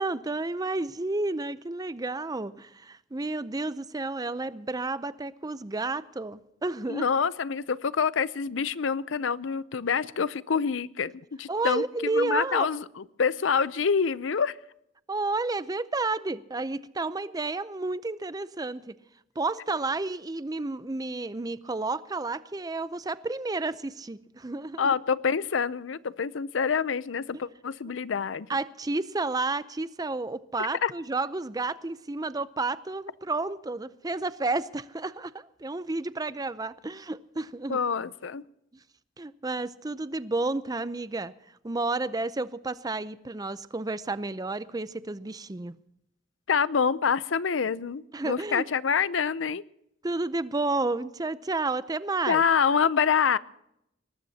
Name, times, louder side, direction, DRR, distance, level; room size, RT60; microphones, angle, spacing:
voice 1, 0.0-7.1 11.5-12.7 15.1-19.0 19.4-25.0 28.5-37.8 39.2-41.3 41.6-45.8 48.1-48.7 50.0-52.4, right 3 dB, 20° right, 0.6 m, -31 dB
voice 2, 6.9-11.1 11.4-14.5 24.8-28.5 30.8-30.9 37.7-38.4 46.5-49.6 52.3-53.4, left 6 dB, 80° left, 0.6 m, -26 dB
22.5 x 19.0 x 2.8 m
head